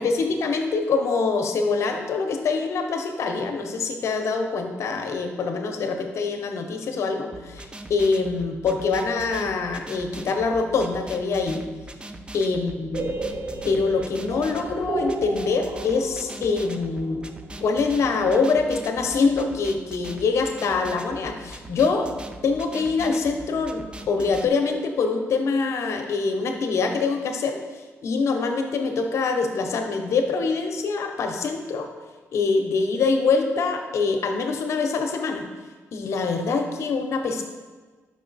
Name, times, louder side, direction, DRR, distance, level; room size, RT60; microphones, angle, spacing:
voice 1, 0.0-11.6 12.3-13.1 13.6-17.3 17.6-22.1 22.4-27.6 28.0-31.9 32.3-35.4 35.9-37.4, left 4 dB, 70° left, 4 dB, 0.7 m, -24 dB
sound 1, 7.3-24.5, right 1 dB, 20° right, 0.4 m, -41 dB
sound 2, 12.9-18.7, right 2 dB, 65° right, 0.7 m, -34 dB
5.1 x 4.9 x 3.9 m, 1.4 s
cardioid pair, 110°, 5 cm